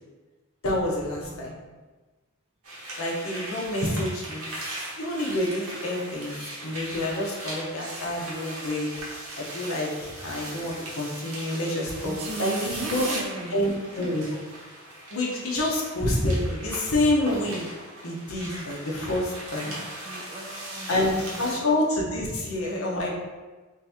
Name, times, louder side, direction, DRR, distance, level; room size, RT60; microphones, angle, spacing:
voice 1, 0.6-1.5 3.0-4.5 5.0-8.9 9.4-12.1 12.4-13.0 13.5-14.2 15.1-17.7 18.0-19.7 20.9-23.1, left 1 dB, 75° left, -3 dB, 0.8 m, -27 dB
voice 2, 1.2-1.7 4.0-4.1 12.0-13.7 20.0-21.5 22.1-22.3, right 3 dB, 30° right, 2 dB, 0.4 m, -38 dB
sound 1, 2.6-21.6, right 1 dB, 90° right, 1.0 m, -38 dB
3.2 x 2.9 x 3.5 m, 1.3 s
head